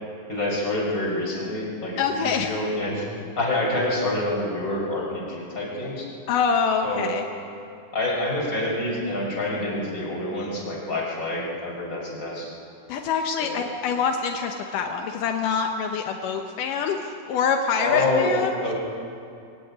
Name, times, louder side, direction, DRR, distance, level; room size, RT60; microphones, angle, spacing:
voice 1, 0.3-3.1 3.4-6.1 6.8-7.1 7.9-12.5 13.4-13.6 17.8-18.3 18.6-18.7, left 2 dB, 20° left, -3 dB, 5.4 m, -27 dB
voice 2, 2.0-2.6 6.3-7.2 12.9-18.5, left 6 dB, 80° left, 3 dB, 1.9 m, -25 dB
21.5 x 16.5 x 9.6 m, 2.5 s
omnidirectional pair, 5.2 m